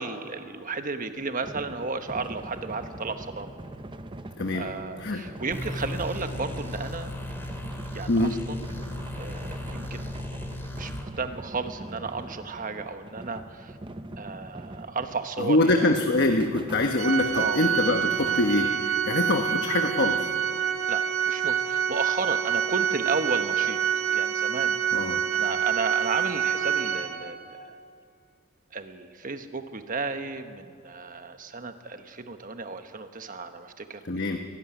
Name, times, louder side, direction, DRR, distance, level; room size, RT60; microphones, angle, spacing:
voice 1, 0.0-3.5 4.5-7.1 7.7-8.6 9.1-10.2 10.8-13.7 14.2-16.0 17.4-17.6 17.9-18.0 20.9-23.8 24.1-27.7 28.7-34.0, right 4 dB, 40° right, 8 dB, 1.2 m, -33 dB
sound 1, 1.2-15.4 15.8-18.6, right 1 dB, 25° right, 0.7 m, -43 dB
voice 2, 4.4-4.7 5.0-5.2 8.1-8.3 15.4-20.3 24.9-25.2 34.0-34.4, left 2 dB, 55° left, 4 dB, 1.1 m, -24 dB
sound 2, 5.5-11.1, left 1 dB, 10° left, 2.2 m, -36 dB
Organ, 17.0-27.6, right 9 dB, 80° right, 1.7 m, -27 dB
23.5 x 14.0 x 9.9 m, 2.4 s
head